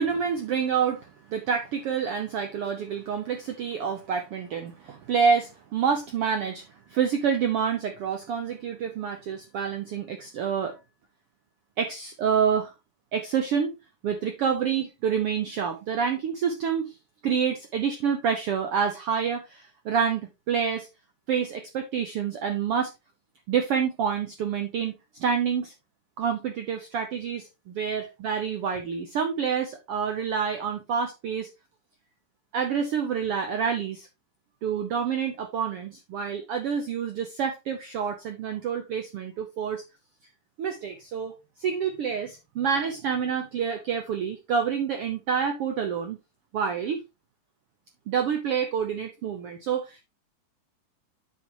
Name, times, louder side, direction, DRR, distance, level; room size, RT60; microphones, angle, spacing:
voice 1, 0.0-6.6 6.9-10.7 11.8-12.7 13.1-13.7 14.0-16.9 17.2-20.9 21.3-22.9 23.5-24.9 25.2-25.7 26.2-31.5 32.5-34.1 34.6-39.8 40.6-46.2 46.5-47.0 48.1-50.0, right 7 dB, 80° right, 1.2 m, -28 dB
9.2 x 5.8 x 3.0 m
omnidirectional pair, 3.8 m